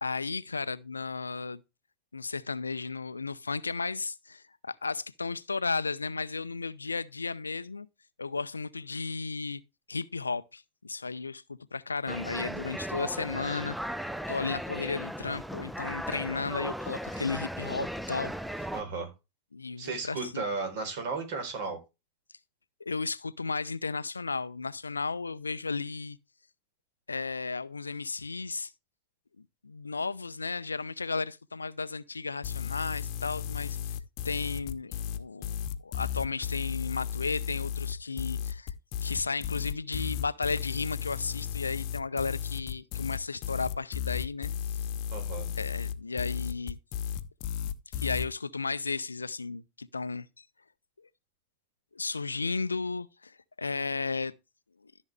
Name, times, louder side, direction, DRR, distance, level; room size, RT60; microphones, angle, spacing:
voice 1, 0.0-1.6 2.1-7.9 8.2-9.6 9.9-13.8 14.3-18.7 19.5-20.5 22.8-26.2 27.1-28.7 29.6-33.8 34.2-35.5 35.8-38.7 39.0-44.5 45.6-46.8 48.0-50.4 51.9-54.3, left 4 dB, 80° left, 0.5 m, -34 dB
sound 1, 12.1-18.8, equal, ahead, 0.6 m, -37 dB
voice 2, 18.7-19.1 19.8-21.8 45.1-45.5, right 4 dB, 50° right, 4.1 m, -34 dB
sound 2, 32.4-48.3, left 9 dB, 45° left, 0.8 m, -34 dB
14.0 x 6.4 x 3.4 m
figure-of-eight pair, 90°, 0 cm